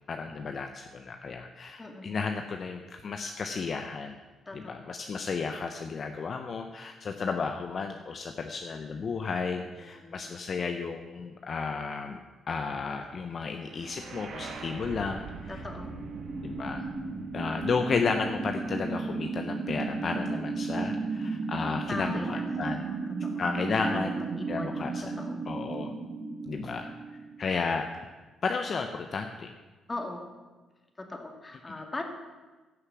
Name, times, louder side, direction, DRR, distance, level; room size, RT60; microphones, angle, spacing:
voice 1, 0.1-4.2 4.5-12.2 12.5-15.6 16.4-16.9 17.3-23.1 23.4-24.2 24.5-25.1 25.5-25.9 26.5-26.9 27.4-28.1 28.4-29.5 31.7-31.8, left 5 dB, 50° left, 6 dB, 0.8 m, -33 dB
voice 2, 4.5-5.0 9.6-10.3 15.5-15.9 21.9-23.4 23.7-24.8 25.0-25.4 27.5-27.6 29.9-30.2 31.0-32.0, left 2 dB, 25° left, 3 dB, 2.1 m, -40 dB
sound 1, 13.6-27.6, right 4 dB, 65° right, 1.7 m, -35 dB
15.5 x 6.5 x 6.1 m, 1.3 s
cardioid pair, 90°, 0 cm